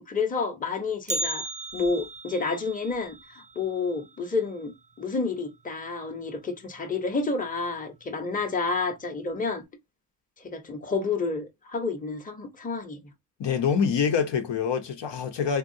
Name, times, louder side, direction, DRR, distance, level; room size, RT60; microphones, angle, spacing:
voice 1, 0.0-1.4 1.7-9.6 10.4-13.1, left 4 dB, 20° left, 0.7 m, -30 dB
Bell, 1.1-5.2 5.5-5.6 6.0-6.1 6.9-7.0 7.8-8.1 8.4-8.5, right 1 dB, 20° right, 0.3 m, -37 dB
voice 2, 13.4-15.6, left 6 dB, 75° left, 0.8 m, -25 dB
3.6 x 2.3 x 2.6 m
wide cardioid pair, 115°, 43 cm